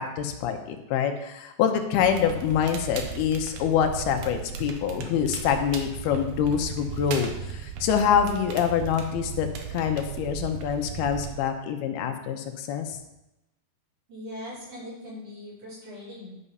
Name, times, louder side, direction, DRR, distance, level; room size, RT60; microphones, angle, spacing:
voice 1, 0.0-13.0, left 8 dB, 80° left, 5 dB, 2.8 m, -26 dB
Crackle, 1.9-11.3, right 7 dB, 70° right, 2.3 m, -36 dB
voice 2, 14.1-16.4, left 1 dB, 40° right, -8 dB, 5.2 m, -40 dB
11.0 x 6.1 x 5.5 m, 0.92 s
omnidirectional pair, 4.4 m